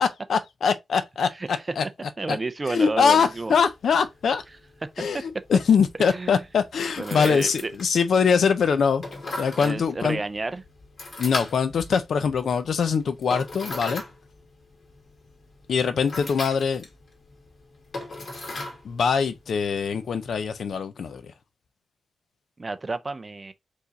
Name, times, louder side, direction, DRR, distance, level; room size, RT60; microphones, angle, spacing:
voice 1, 0.0-1.8 2.3-2.4 2.7-4.4 5.0-9.0 9.4-10.2 11.2-14.0 15.7-16.8 18.8-21.2, left 6 dB, 65° left, 0.6 m, -23 dB
voice 2, 2.2-3.5 4.8-5.2 6.1-6.4 7.0-7.7 9.6-10.6 22.6-23.5, right 3 dB, 20° right, 0.4 m, -31 dB
sound 1, 3.3-20.8, left 2 dB, 45° left, 1.9 m, -40 dB
4.7 x 2.5 x 4.0 m
wide cardioid pair, 150°, 0 cm